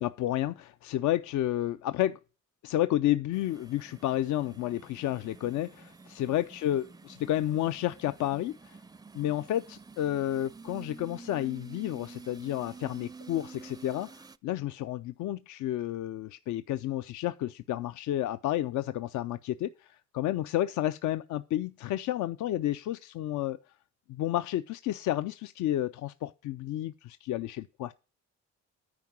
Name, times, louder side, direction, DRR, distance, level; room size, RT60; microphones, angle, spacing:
voice 1, 0.0-2.2 2.6-8.8 9.1-23.6 24.1-27.9, left 13 dB, 75° left, 0.5 m, -31 dB
sound 1, 3.3-14.4, right 4 dB, 15° right, 0.4 m, -49 dB
9.6 x 4.7 x 7.5 m
cardioid pair, 90°, 30 cm